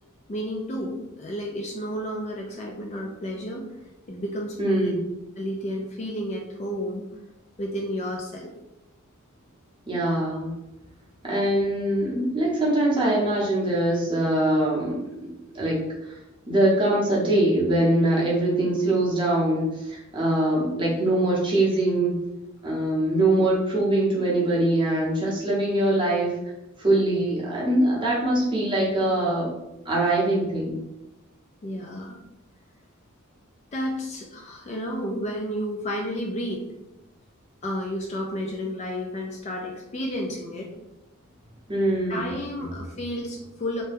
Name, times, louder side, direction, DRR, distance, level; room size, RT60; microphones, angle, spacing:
voice 1, 0.3-3.6 4.1-4.9 5.4-7.1 7.6-8.5 23.2-23.4 31.6-32.2 33.7-36.7 37.6-40.7 42.1-43.8, equal, 30° left, 0 dB, 0.3 m, -31 dB
voice 2, 4.6-5.0 9.9-10.6 11.2-15.0 15.5-15.8 16.5-22.2 22.6-26.3 26.8-29.5 29.8-30.8 41.7-42.3 42.6-42.8, right 1 dB, 25° right, -5 dB, 0.8 m, -23 dB
2.6 x 2.2 x 3.3 m, 0.94 s
head